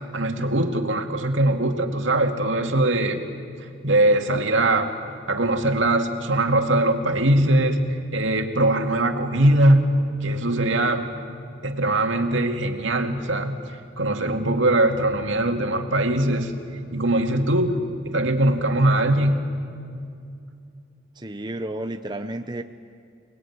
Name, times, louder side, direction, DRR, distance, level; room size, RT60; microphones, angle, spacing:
voice 1, 0.1-3.2 3.8-4.9 5.3-7.8 8.1-9.9 10.2-11.1 11.6-13.6 14.0-16.5 16.9-17.8 18.1-19.4, right 1 dB, 75° right, 4 dB, 2.3 m, -21 dB
voice 2, 21.2-22.6, right 1 dB, 20° right, 7 dB, 0.7 m, -31 dB
29.5 x 20.5 x 9.5 m, 2.4 s
head